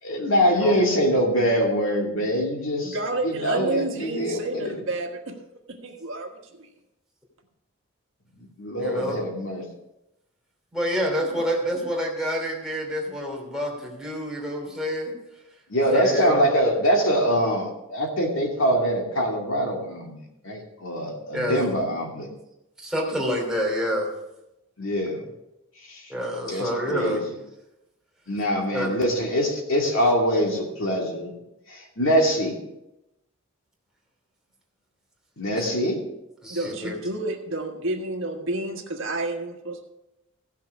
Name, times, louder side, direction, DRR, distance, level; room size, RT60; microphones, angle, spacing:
voice 1, 0.0-3.0 3.2-4.7 8.4-9.6 15.7-20.2 20.4-22.3 24.8-25.2 25.9-26.1 26.5-27.2 28.3-31.3 31.7-32.6 35.4-36.0, equal, 70° left, 0 dB, 2.6 m, -24 dB
voice 2, 2.8-5.4 5.7-6.7 36.5-39.8, right 2 dB, 65° right, 3 dB, 1.5 m, -30 dB
voice 3, 8.8-9.2 10.7-15.2 15.9-16.4 21.3-21.6 22.8-24.1 26.1-27.2 28.7-28.9 35.6-35.7 36.4-37.0, equal, 5° right, -2 dB, 2.9 m, -28 dB
16.0 x 6.7 x 4.8 m, 0.90 s
head